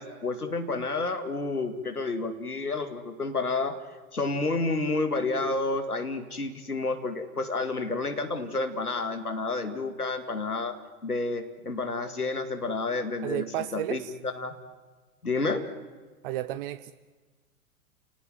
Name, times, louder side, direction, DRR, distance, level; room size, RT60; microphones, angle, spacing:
voice 1, 0.0-3.8 4.1-10.8 11.0-13.5 13.7-14.0 14.3-14.5 15.2-15.7, left 3 dB, 80° left, 8 dB, 2.4 m, -30 dB
voice 2, 13.2-14.1 16.2-16.9, right 12 dB, 40° right, 12 dB, 0.9 m, -32 dB
29.5 x 19.0 x 9.3 m, 1.4 s
figure-of-eight pair, 100°, 44 cm